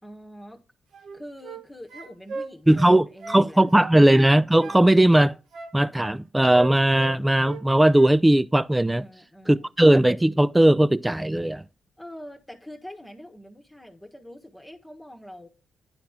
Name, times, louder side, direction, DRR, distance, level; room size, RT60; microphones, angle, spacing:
voice 1, 0.0-0.6 1.1-4.1 8.9-9.7 12.0-15.5, equal, 5° left, 1.4 m, -44 dB
sound 1, 0.9-1.6 1.9-3.4 3.7-4.8 5.1-6.2 6.5-7.6 7.9-8.2, right 4 dB, 75° right, 1.2 m, -38 dB
voice 2, 2.7-5.4 5.7-9.0 9.5-11.6, right 1 dB, 10° right, 0.4 m, -18 dB
10.5 x 4.2 x 5.8 m
supercardioid pair, 65°, 0 cm